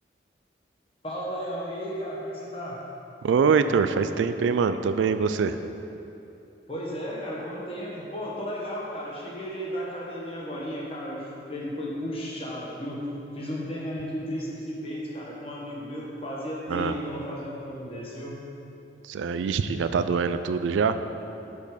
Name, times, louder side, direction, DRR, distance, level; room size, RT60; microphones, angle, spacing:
voice 1, 1.0-2.8 6.7-13.1 13.3-18.4, equal, 30° left, -4 dB, 1.2 m, -34 dB
voice 2, 3.2-5.6 16.7-16.9 19.0-21.0, right 5 dB, 85° right, 10 dB, 0.3 m, -24 dB
6.2 x 5.3 x 5.0 m, 2.9 s
head